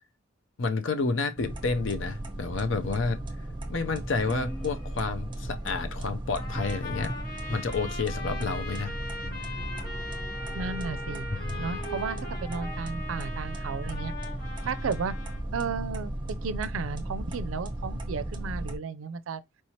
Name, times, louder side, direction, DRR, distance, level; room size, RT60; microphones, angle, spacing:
voice 1, 0.6-3.2 3.7-7.1 7.5-8.9, left 4 dB, 70° left, 0.6 m, -30 dB
sound 1, 1.4-18.8, right 1 dB, 25° right, 0.7 m, -36 dB
sound 2, 4.1-5.1 5.4-6.0 6.8-12.8, equal, 25° left, 0.7 m, -44 dB
Trumpet, 6.3-15.4, left 2 dB, 45° left, 1.5 m, -41 dB
voice 2, 10.5-11.3 11.6-14.1 14.6-15.2 15.5-19.4, right 5 dB, 90° right, 0.4 m, -34 dB
4.5 x 3.1 x 2.8 m
head